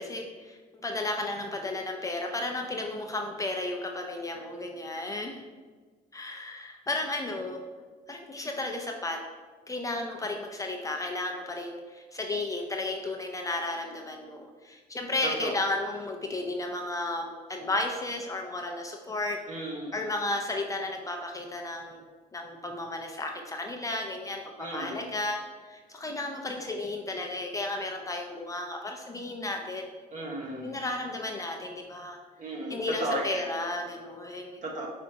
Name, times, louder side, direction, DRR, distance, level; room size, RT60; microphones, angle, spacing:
voice 1, 0.0-5.4 6.1-7.6 8.1-9.2 9.7-22.0 22.3-25.4 25.6-29.9 30.6-32.2 32.7-34.6, left 2 dB, 20° left, 2 dB, 0.4 m, -33 dB
voice 2, 19.5-20.0 24.6-25.1 30.1-30.7 32.4-33.5 34.6-34.9, right 1 dB, 45° right, -1 dB, 1.1 m, -34 dB
5.1 x 3.4 x 2.8 m, 1.4 s
cardioid pair, 110°, 17 cm